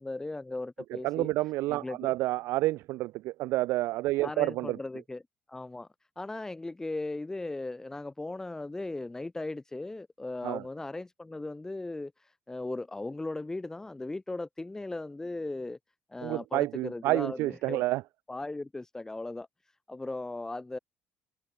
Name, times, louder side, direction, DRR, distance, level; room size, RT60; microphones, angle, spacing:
voice 1, 0.0-1.3 1.7-2.1 4.2-5.2 5.5-5.9 6.2-15.8 16.1-17.8 18.3-19.5 19.9-20.8, left 2 dB, 10° left, 5.8 m, -37 dB
voice 2, 1.0-4.8 10.4-10.6 16.2-18.0, right 18 dB, 80° right, 1.0 m, -29 dB
cardioid pair, 110°, 4 cm